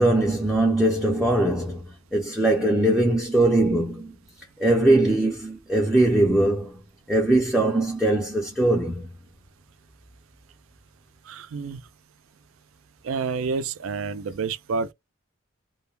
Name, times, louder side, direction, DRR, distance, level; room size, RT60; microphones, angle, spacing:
voice 1, 0.0-1.9 2.1-4.2 4.6-6.7 7.1-9.1, right 1 dB, 5° right, 0.4 m, -21 dB
voice 2, 11.3-11.8 13.0-14.9, right 4 dB, 75° right, 0.4 m, -29 dB
2.3 x 2.1 x 3.1 m
head